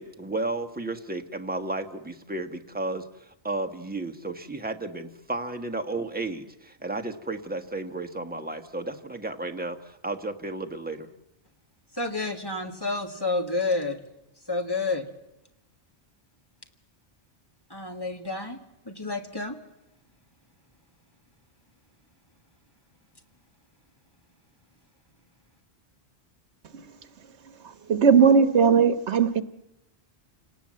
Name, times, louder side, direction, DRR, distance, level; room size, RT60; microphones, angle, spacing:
voice 1, 0.0-11.1, right 2 dB, 10° right, 5 dB, 1.2 m, -33 dB
voice 2, 11.9-14.0 14.5-15.0 17.7-19.6, left 3 dB, 20° left, 4 dB, 1.9 m, -29 dB
voice 3, 27.9-29.4, right 6 dB, 90° right, 11 dB, 1.4 m, -18 dB
28.5 x 18.5 x 7.6 m, 0.91 s
omnidirectional pair, 1.1 m